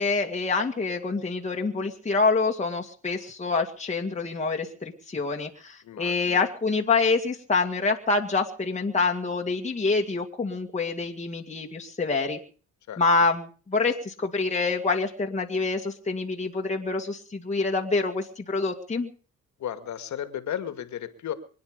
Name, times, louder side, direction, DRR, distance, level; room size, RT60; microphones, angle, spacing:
voice 1, 0.0-12.4 13.0-19.1, left 3 dB, 25° left, 1 dB, 2.2 m, -26 dB
voice 2, 5.8-6.4 12.9-13.0 19.6-21.3, left 10 dB, 70° left, 9 dB, 2.2 m, -34 dB
24.5 x 9.8 x 5.2 m, 0.41 s
cardioid pair, 90°, 30 cm